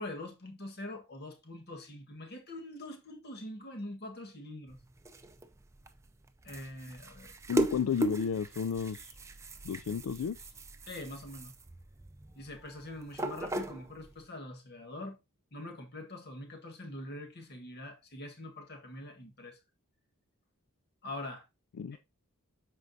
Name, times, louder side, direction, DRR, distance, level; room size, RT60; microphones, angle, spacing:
voice 1, 0.0-4.8 6.4-7.4 10.8-11.5 12.4-15.2 15.5-19.6 21.0-21.4 21.9-22.0, left 1 dB, 45° left, 1.5 m, -44 dB
sound 1, 4.7-14.3, right 1 dB, 15° right, 0.5 m, -38 dB
voice 2, 7.5-9.1 9.6-10.4 21.8-22.0, left 7 dB, 75° left, 0.3 m, -32 dB
13.5 x 4.5 x 2.7 m
head